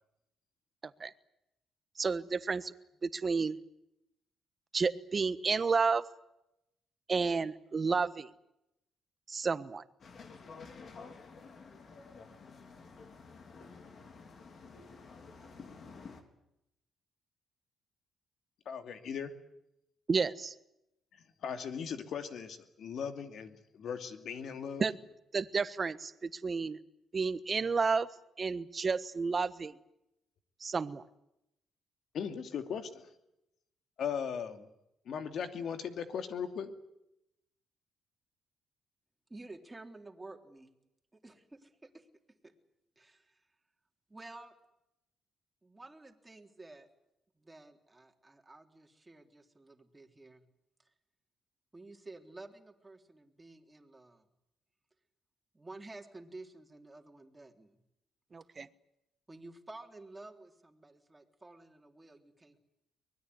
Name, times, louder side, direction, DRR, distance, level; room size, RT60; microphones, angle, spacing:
voice 1, 2.0-2.7 3.0-3.6 4.7-6.0 7.1-8.3 9.3-9.8 20.1-20.5 24.8-24.9 25.3-26.8 27.1-28.1 28.4-29.8 30.6-31.0 58.3-58.7, right 4 dB, 35° right, 14 dB, 1.3 m, -31 dB
sound 1, 10.0-16.2, left 4 dB, 50° left, 4.0 m, -51 dB
voice 2, 18.7-19.3 21.1-24.9 32.1-33.1 34.0-34.7 35.0-36.7, left 7 dB, 65° left, 7 dB, 2.7 m, -38 dB
voice 3, 39.3-40.8 41.1-42.1 42.4-42.5 43.0-43.5 44.1-44.5 45.6-46.9 47.4-50.5 50.8-50.9 51.7-54.3 55.5-57.8 58.4-58.5 59.3-62.6, right 2 dB, 15° right, 3 dB, 3.6 m, -52 dB
23.5 x 20.5 x 9.7 m, 0.86 s
cardioid pair, 90°, 0 cm